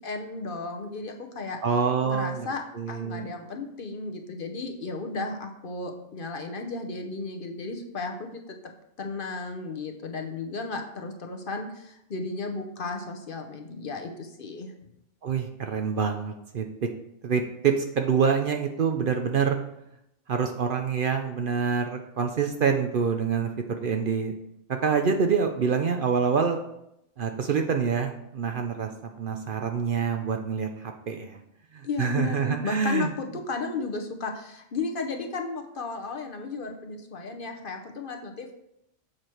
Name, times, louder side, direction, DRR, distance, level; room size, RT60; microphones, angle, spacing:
voice 1, 0.0-1.6 2.0-2.6 2.9-8.7 9.0-14.7 31.8-38.5, left 3 dB, 50° left, 4 dB, 0.9 m, -34 dB
voice 2, 1.6-2.5 2.8-3.3 15.2-16.6 17.2-19.6 20.3-24.3 24.7-26.6 27.2-28.9 29.2-31.4 31.7-33.1, right 6 dB, 55° right, 5 dB, 0.7 m, -26 dB
7.5 x 4.7 x 4.4 m, 0.80 s
omnidirectional pair, 1.2 m